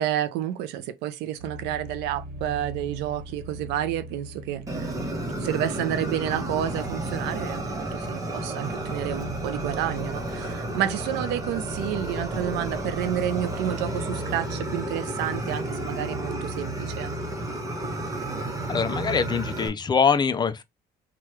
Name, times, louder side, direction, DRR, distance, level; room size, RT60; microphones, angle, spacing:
voice 1, 0.0-4.9 5.4-17.2, right 11 dB, 90° right, 0.5 m, -30 dB
sound 1, 1.4-19.6, right 2 dB, 70° right, 1.1 m, -39 dB
Fire, 4.7-19.7, right 1 dB, 20° right, 0.9 m, -32 dB
voice 2, 18.7-20.6, left 6 dB, 25° left, 0.4 m, -23 dB
2.9 x 2.3 x 3.1 m
cardioid pair, 110°, 17 cm